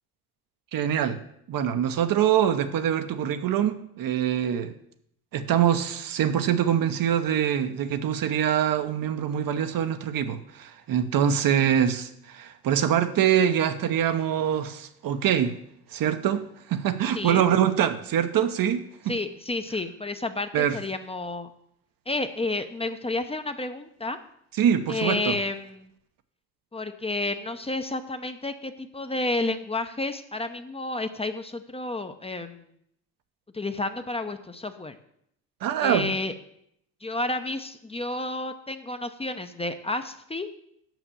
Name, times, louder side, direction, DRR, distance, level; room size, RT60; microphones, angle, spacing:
voice 1, 0.7-1.2 1.5-4.7 5.3-15.6 15.9-19.1 20.5-20.8 24.6-25.4 35.6-36.2, right 9 dB, 60° right, 0.9 m, -24 dB
voice 2, 19.1-21.5 22.1-24.2 24.9-25.9 26.7-32.6 33.5-35.0 35.8-36.3 37.0-40.5, left 2 dB, 15° left, 0.7 m, -31 dB
6.1 x 6.0 x 6.9 m
supercardioid pair, 70°, 38 cm